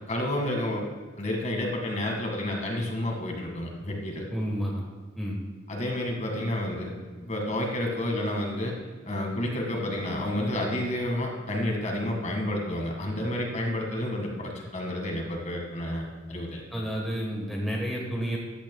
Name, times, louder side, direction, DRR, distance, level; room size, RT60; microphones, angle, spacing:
voice 1, 0.1-0.9 1.2-4.3 5.7-6.9 7.2-8.7 9.1-16.6, left 1 dB, 40° left, 0 dB, 1.8 m, -30 dB
voice 2, 4.3-4.8 5.2-5.4 16.7-18.4, equal, ahead, -3 dB, 1.3 m, -30 dB
14.0 x 10.5 x 2.3 m, 1.4 s
head